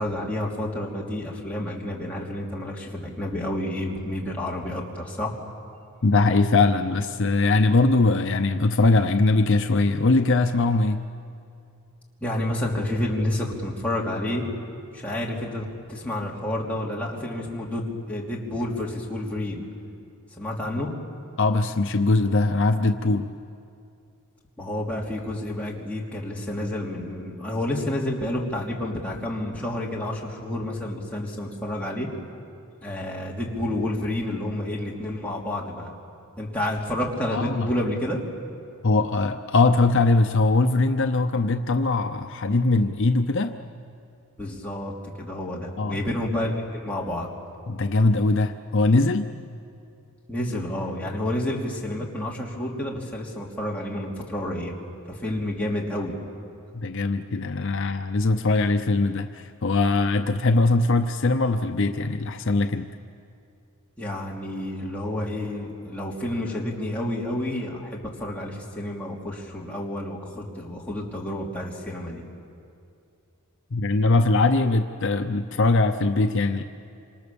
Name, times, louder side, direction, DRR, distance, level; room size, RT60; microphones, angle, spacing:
voice 1, 0.0-5.4 12.2-14.4 14.9-19.6 20.4-20.9 24.6-32.1 32.8-35.9 36.4-38.2 44.4-47.3 50.3-54.7 55.1-56.1 64.0-72.2, left 1 dB, 5° left, -4 dB, 3.1 m, -29 dB
voice 2, 6.0-11.0 20.6-20.7 21.4-23.3 37.3-37.7 38.8-43.5 45.8-46.0 47.7-49.3 56.7-62.9 73.7-76.6, left 3 dB, 55° left, 6 dB, 0.7 m, -21 dB
27.0 x 26.5 x 7.1 m, 2.5 s
head